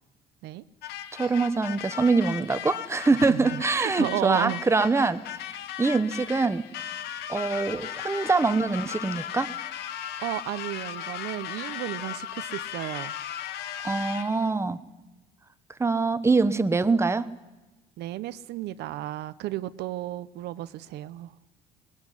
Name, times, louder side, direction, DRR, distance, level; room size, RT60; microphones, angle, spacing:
sound 1, 0.8-14.5, left 10 dB, 80° left, 1.5 m, -37 dB
voice 1, 1.1-5.2 5.8-6.6 7.3-9.5 13.8-14.8 15.8-17.3, right 3 dB, 15° right, 1.1 m, -24 dB
voice 2, 3.3-4.6 10.2-13.1 18.0-21.3, right 14 dB, 80° right, 0.9 m, -33 dB
21.5 x 20.0 x 10.0 m
cardioid pair, 110°, 17 cm